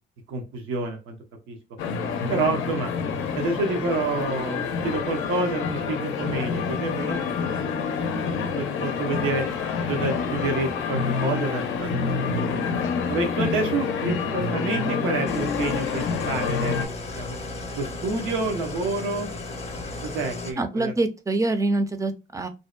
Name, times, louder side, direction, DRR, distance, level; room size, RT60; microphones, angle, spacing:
voice 1, 0.3-1.2 1.5-1.6 2.3-2.9 3.3-7.2 8.5-9.4 9.9-12.8 13.1-16.7 17.2-17.4 17.7-19.3 20.0-20.9, right 3 dB, 85° right, 0.7 m, -28 dB
sound 1, 1.8-16.9, left 5 dB, 85° left, 0.5 m, -27 dB
Engine starting / Idling, 15.3-20.5, left 2 dB, 30° left, 0.6 m, -35 dB
voice 2, 20.6-22.5, right 2 dB, 15° right, 0.4 m, -25 dB
2.6 x 2.1 x 2.3 m
cardioid pair, 90°, 20 cm